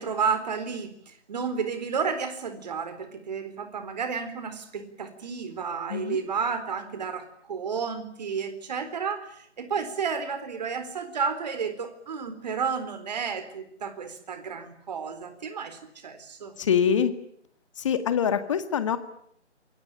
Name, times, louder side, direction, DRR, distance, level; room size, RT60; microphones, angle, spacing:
voice 1, 0.0-16.6, right 6 dB, 35° right, 10 dB, 4.2 m, -32 dB
voice 2, 16.6-17.1 17.8-19.0, left 7 dB, 25° left, 11 dB, 2.0 m, -24 dB
28.0 x 22.0 x 8.9 m, 0.70 s
figure-of-eight pair, 155°, 36 cm